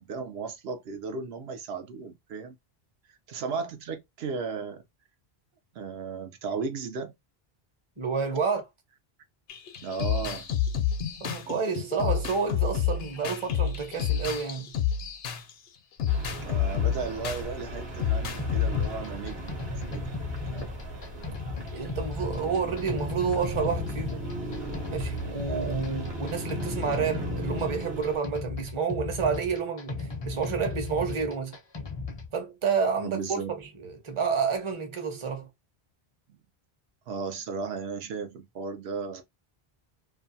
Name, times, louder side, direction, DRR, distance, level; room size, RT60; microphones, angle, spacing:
voice 1, 0.0-2.6 3.3-4.8 5.7-7.1 9.8-10.5 16.3-20.7 33.0-33.6 37.1-39.2, right 5 dB, 85° right, 0.9 m, -35 dB
voice 2, 8.0-8.6 11.2-14.7 21.7-24.2 24.9-31.6 32.3-33.4 33.8-35.5, right 5 dB, 35° right, 0.7 m, -29 dB
sound 1, 9.5-15.5 16.0-17.4 18.0-18.9, left 8 dB, 75° left, 0.8 m, -29 dB
sound 2, 16.1-28.2, right 1 dB, 50° right, 1.1 m, -37 dB
sound 3, 18.4-32.3, left 3 dB, 35° left, 0.4 m, -36 dB
2.5 x 2.2 x 2.6 m
omnidirectional pair, 1.0 m